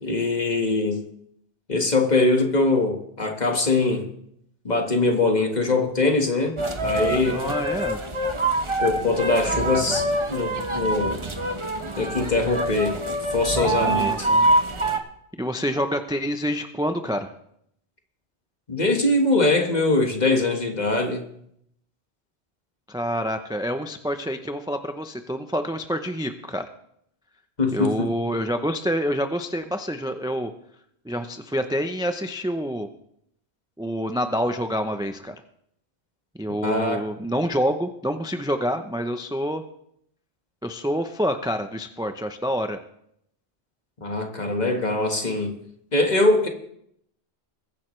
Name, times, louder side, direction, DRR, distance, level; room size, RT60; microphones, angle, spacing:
voice 1, 0.0-1.0 1.7-4.1 4.7-7.4 8.8-11.2 12.0-13.0 13.3-14.3 18.7-21.3 27.6-28.1 36.6-37.1 44.0-45.5 45.9-46.5, left 2 dB, 40° left, 1.8 m, -22 dB
sound 1, 6.6-15.0, right 1 dB, 30° right, 1.1 m, -25 dB
voice 2, 7.3-8.0 13.8-14.5 15.4-17.3 22.9-26.7 27.7-30.5 31.0-32.9 33.8-35.3 36.4-39.6 40.6-42.8, equal, 5° right, 0.5 m, -27 dB
21.5 x 10.5 x 3.3 m
omnidirectional pair, 1.1 m